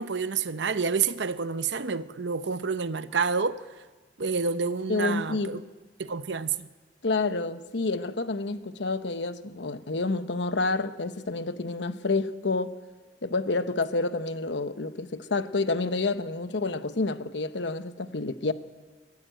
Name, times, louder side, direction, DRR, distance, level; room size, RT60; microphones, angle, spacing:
voice 1, 0.0-3.6 4.2-5.6 6.0-6.7, right 5 dB, 75° right, 0.8 m, -28 dB
voice 2, 4.9-5.6 7.0-12.7 13.2-18.5, left 3 dB, 75° left, 1.0 m, -29 dB
23.0 x 12.5 x 9.1 m
head